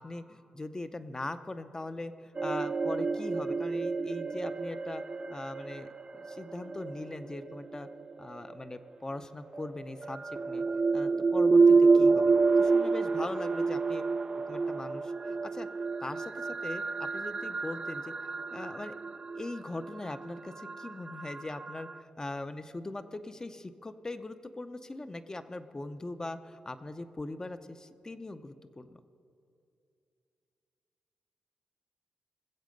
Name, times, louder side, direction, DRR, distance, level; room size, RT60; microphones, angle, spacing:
voice 1, 0.0-5.0 5.3-7.9 8.2-10.6 10.9-14.0 14.5-15.7 16.0-18.1 18.5-18.9 19.3-29.0, left 2 dB, 25° left, 10 dB, 0.7 m, -40 dB
sound 1, 2.4-8.4 9.5-22.0, right 4 dB, 35° right, 0.4 m, -28 dB
20.0 x 7.5 x 5.3 m, 2.5 s
cardioid pair, 60°, 3 cm